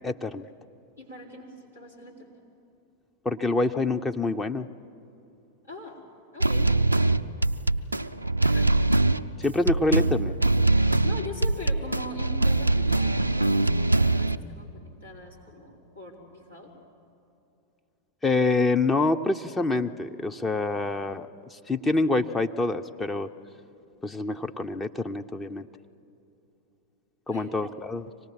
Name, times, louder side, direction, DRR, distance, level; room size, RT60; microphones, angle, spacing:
voice 1, 0.0-0.5 3.2-4.7 9.4-10.3 18.2-23.3 24.0-25.7 27.3-28.1, left 2 dB, 15° left, 6 dB, 0.6 m, -26 dB
voice 2, 1.0-2.3 5.6-6.0 6.3-6.7 8.4-8.7 10.8-16.7 27.3-27.6, left 2 dB, 85° left, -5 dB, 4.3 m, -42 dB
sound 1, 6.4-14.4, right 2 dB, 85° right, 0.4 m, -23 dB
25.0 x 18.5 x 7.6 m, 2.8 s
figure-of-eight pair, 90°, 0 cm